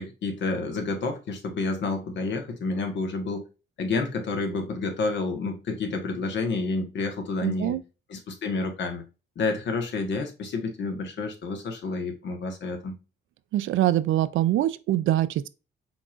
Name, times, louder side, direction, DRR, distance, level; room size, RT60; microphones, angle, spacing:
voice 1, 0.0-3.5 3.8-7.8 8.1-9.0 9.3-13.0, left 3 dB, 65° left, 1.4 m, -29 dB
voice 2, 7.4-7.8 13.5-15.5, right 13 dB, 80° right, 0.5 m, -24 dB
5.9 x 3.7 x 2.4 m
cardioid pair, 90°, 20 cm